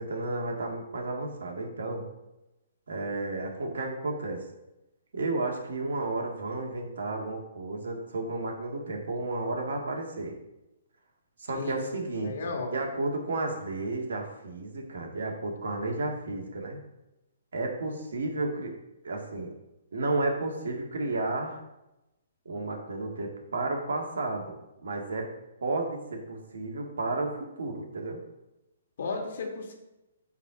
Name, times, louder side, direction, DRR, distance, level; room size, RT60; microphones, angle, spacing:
voice 1, 0.0-2.1 2.9-4.4 5.1-10.4 11.4-16.8 17.5-18.7 19.0-19.5 19.9-21.6 22.5-24.4 24.8-25.3 25.6-28.2, right 2 dB, 70° right, 1 dB, 1.9 m, -32 dB
voice 2, 11.5-12.7 29.0-29.7, left 3 dB, 65° left, 1 dB, 2.0 m, -35 dB
8.1 x 4.3 x 5.8 m, 0.96 s
figure-of-eight pair, 130°, 0 cm